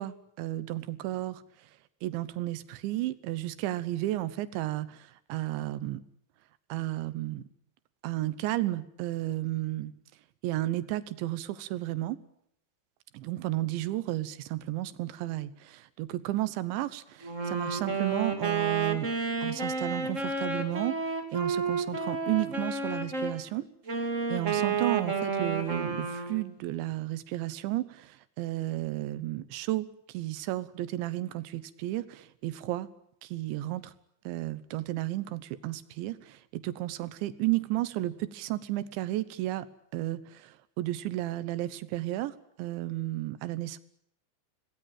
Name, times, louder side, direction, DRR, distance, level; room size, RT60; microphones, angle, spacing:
voice 1, 0.0-1.4 2.0-6.0 6.7-7.4 8.0-9.9 10.4-12.2 13.1-19.1 19.4-21.0 21.3-23.7 24.3-29.9 30.1-32.9 33.2-33.9 34.2-39.7 39.9-43.8, right 16 dB, 80° right, 15 dB, 3.4 m, -33 dB
Wind instrument woodwind instrument, 17.2-23.4 23.9-26.5, right 4 dB, 25° right, 2.0 m, -31 dB
26.0 x 19.0 x 9.0 m, 0.73 s
omnidirectional pair, 5.3 m